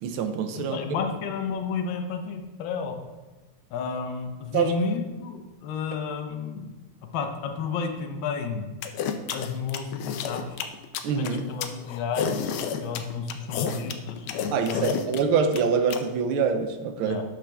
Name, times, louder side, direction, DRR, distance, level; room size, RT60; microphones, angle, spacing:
voice 1, 0.0-0.8 4.5-4.7 11.0-11.4 14.5-17.2, right 6 dB, 80° right, 8 dB, 1.6 m, -25 dB
voice 2, 0.5-2.9 3.7-6.7 7.1-8.7 9.3-10.6 11.2-15.0 17.0-17.2, left 5 dB, 70° left, 4 dB, 1.5 m, -32 dB
sound 1, 8.8-16.0, left 7 dB, 85° left, 1.5 m, -30 dB
12.0 x 5.1 x 3.4 m, 1.2 s
omnidirectional pair, 2.3 m